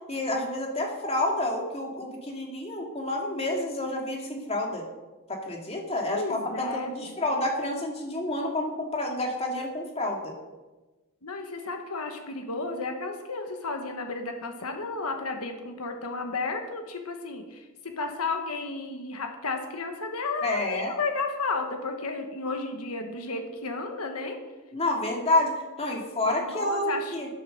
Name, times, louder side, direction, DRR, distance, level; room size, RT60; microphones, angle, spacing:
voice 1, 0.1-4.9 5.3-10.3 20.4-21.0 24.7-27.3, left 1 dB, 25° left, 1 dB, 2.3 m, -29 dB
voice 2, 6.1-7.2 11.2-24.4 26.4-27.2, left 3 dB, 80° left, 5 dB, 1.5 m, -33 dB
13.0 x 10.5 x 5.3 m, 1.2 s
head